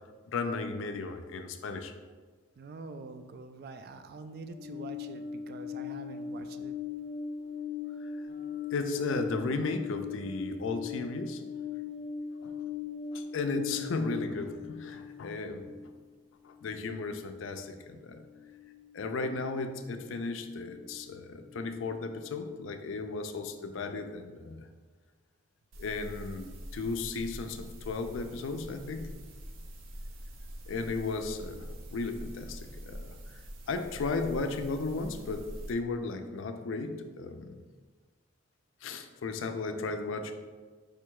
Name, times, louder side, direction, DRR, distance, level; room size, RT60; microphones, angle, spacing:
voice 1, 0.3-1.9 8.0-8.1 8.7-11.4 12.4-12.5 13.1-15.7 16.4-18.2 18.9-24.7 25.8-29.1 30.7-33.1 33.7-37.6 38.8-40.3, left 3 dB, 80° left, 7 dB, 0.4 m, -35 dB
voice 2, 2.6-6.7, right 3 dB, 50° right, 9 dB, 0.3 m, -45 dB
sound 1, 4.5-16.0 16.4-17.7 18.1-19.3 19.7-21.0 21.3-22.0, left 5 dB, 40° left, 0.7 m, -40 dB
sound 2, 25.7-35.7, equal, 85° right, 0.6 m, -45 dB
4.9 x 2.3 x 4.6 m, 1.4 s
head